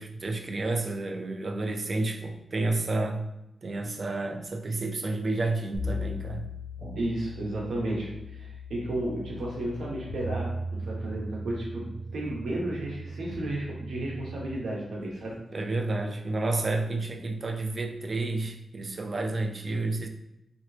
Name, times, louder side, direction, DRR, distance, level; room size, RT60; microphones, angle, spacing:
voice 1, 0.0-3.3 3.6-6.5 6.8-7.0 15.5-20.1, right 2 dB, 35° right, 4 dB, 0.4 m, -30 dB
sound 1, 5.7-14.5, left 1 dB, 90° left, 0.7 m, -38 dB
voice 2, 7.0-15.4, right 1 dB, 80° right, -3 dB, 1.0 m, -33 dB
3.0 x 2.8 x 3.1 m, 0.87 s
wide cardioid pair, 150°, 0 cm